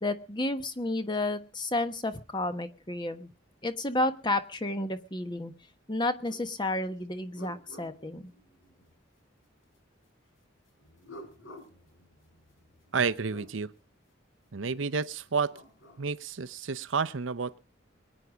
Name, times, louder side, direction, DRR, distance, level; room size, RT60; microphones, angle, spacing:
voice 1, 0.0-3.3 3.6-5.5 5.9-8.3, left 2 dB, 25° left, 9 dB, 1.2 m, -31 dB
sound 1, 6.3-6.5 6.9-8.9 10.8-13.5 15.2-16.1, equal, 85° left, 4.1 m, -52 dB
voice 2, 12.9-13.7 14.5-15.5 16.0-17.6, right 5 dB, 75° right, 12 dB, 0.7 m, -30 dB
22.5 x 9.8 x 5.0 m, 0.34 s
head